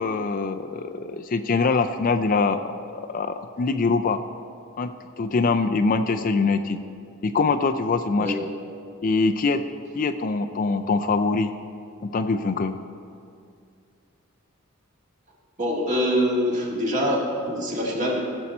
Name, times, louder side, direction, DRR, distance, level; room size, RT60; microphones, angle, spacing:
voice 1, 0.0-2.7 3.1-4.2 4.8-6.8 7.2-8.3 9.0-9.6 10.0-11.5 12.1-12.7, left 4 dB, 40° left, 7 dB, 0.4 m, -23 dB
voice 2, 15.6-18.2, equal, 35° right, -2 dB, 1.9 m, -24 dB
17.0 x 7.1 x 4.3 m, 2.3 s
head